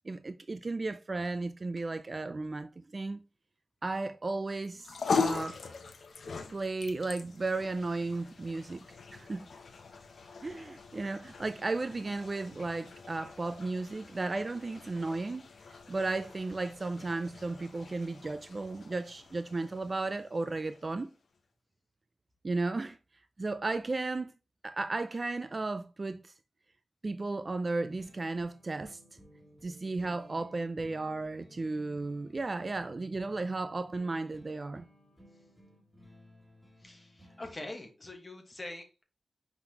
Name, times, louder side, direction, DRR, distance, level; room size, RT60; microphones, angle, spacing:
voice 1, 0.1-3.2 3.8-5.6 6.5-8.8 9.1-9.5 10.4-15.5 15.9-21.1 22.4-23.0 23.4-24.3 24.6-26.3 27.0-29.0 29.6-34.9, right 3 dB, 30° right, 0.3 m, -34 dB
sound 1, 4.6-21.1, left 5 dB, 60° left, 0.9 m, -40 dB
sound 2, 27.8-37.7, equal, ahead, 1.9 m, -57 dB
voice 2, 36.8-39.0, left 2 dB, 20° left, 1.3 m, -44 dB
5.8 x 5.7 x 2.8 m
wide cardioid pair, 170°, 0 cm